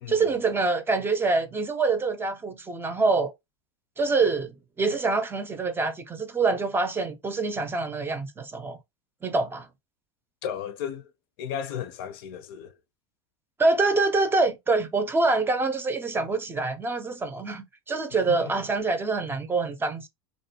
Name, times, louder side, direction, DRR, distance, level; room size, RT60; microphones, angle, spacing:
voice 1, 0.1-3.3 4.0-8.8 9.2-9.7 13.6-20.1, right 3 dB, 15° right, 0.5 m, -25 dB
voice 2, 10.4-11.1 11.4-12.7 18.3-18.5, left 9 dB, 70° left, 0.5 m, -34 dB
2.5 x 2.2 x 2.8 m
hypercardioid pair, 100°, 13 cm